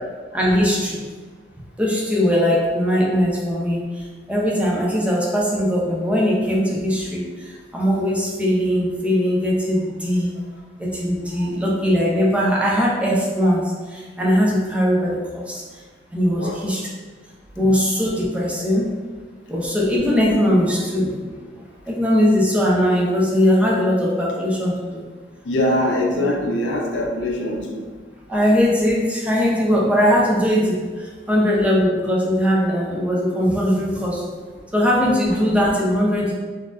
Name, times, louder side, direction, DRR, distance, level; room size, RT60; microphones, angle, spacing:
voice 1, 0.3-1.0 1.8-10.3 10.8-15.6 16.1-16.8 17.6-18.9 19.5-25.0 28.3-34.2 34.7-36.3, equal, 5° right, -4 dB, 0.6 m, -20 dB
voice 2, 16.3-16.7 17.7-17.8 25.4-27.9 31.2-31.4, left 1 dB, 80° left, 0 dB, 0.6 m, -23 dB
4.1 x 2.5 x 2.4 m, 1.5 s
head